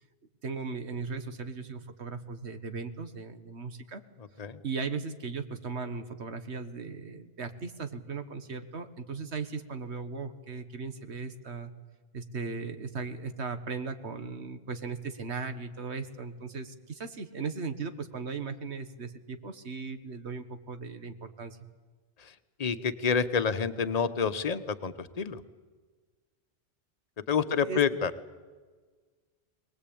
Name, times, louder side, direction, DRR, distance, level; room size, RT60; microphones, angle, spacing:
voice 1, 0.4-4.0 4.6-11.7 12.1-21.6 27.5-27.8, right 4 dB, 85° right, 8 dB, 1.7 m, -37 dB
voice 2, 22.2-25.4 27.3-28.1, left 6 dB, 40° left, 11 dB, 1.0 m, -28 dB
23.0 x 20.0 x 8.6 m, 1.4 s
omnidirectional pair, 1.1 m